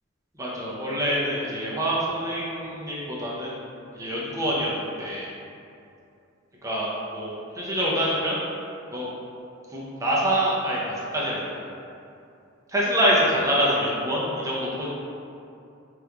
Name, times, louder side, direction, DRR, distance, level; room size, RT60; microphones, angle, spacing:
voice 1, 0.3-3.5 3.9-5.3 6.6-8.4 8.9-9.1 9.7-11.6 12.7-14.9, equal, 15° right, -6 dB, 0.6 m, -26 dB
3.6 x 3.0 x 2.2 m, 2.6 s
head